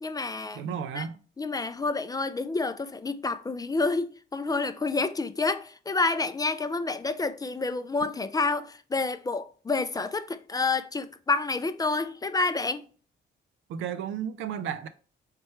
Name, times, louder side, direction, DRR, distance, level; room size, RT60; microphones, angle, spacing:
voice 1, 0.0-0.6 0.9-1.0 1.4-12.8, left 3 dB, 20° left, 0.3 m, -29 dB
voice 2, 0.6-1.2 13.7-14.9, right 8 dB, 80° right, 0.5 m, -33 dB
4.3 x 3.4 x 3.0 m
cardioid pair, 90°, 20 cm